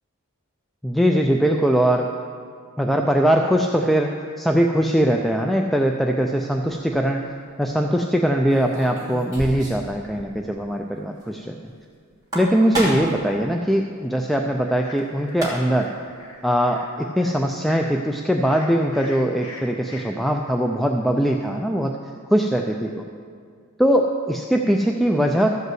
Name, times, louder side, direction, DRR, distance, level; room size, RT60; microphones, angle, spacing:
voice 1, 0.8-2.1 2.8-7.2 7.6-11.5 12.3-15.9 16.4-21.9 22.3-23.0 23.8-25.6, equal, ahead, 2 dB, 0.3 m, -21 dB
sound 1, 6.7-7.0 8.5-9.9 10.2-10.3 10.6-10.7 12.1-13.2 15.0-15.1 15.3-15.9, right 1 dB, 15° right, 2.7 m, -30 dB
sound 2, 14.6-20.0, left 2 dB, 70° left, 2.0 m, -43 dB
13.0 x 5.4 x 7.7 m, 2.1 s
head